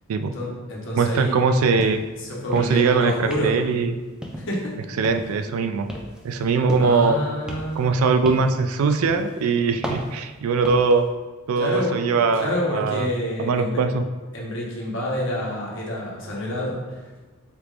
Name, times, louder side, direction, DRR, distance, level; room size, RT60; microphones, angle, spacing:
voice 1, 0.2-1.4 2.2-3.6 4.4-4.7 6.8-8.1 11.6-11.9 12.2-13.8 14.3-17.0, left 1 dB, 65° left, -3 dB, 1.0 m, -28 dB
voice 2, 1.0-2.0 2.5-3.9 5.0-5.9 6.2-7.2 7.8-11.1 11.5-13.1 13.4-14.0, right 4 dB, 85° right, 8 dB, 0.3 m, -21 dB
sound 1, 1.8-2.1 2.4-2.9 3.3-3.8 4.2-4.7 5.0-5.4 5.9-7.1 7.5-8.6 9.1-9.3 9.8-11.0, equal, 5° right, 0.4 m, -34 dB
4.5 x 3.4 x 2.4 m, 1.3 s
head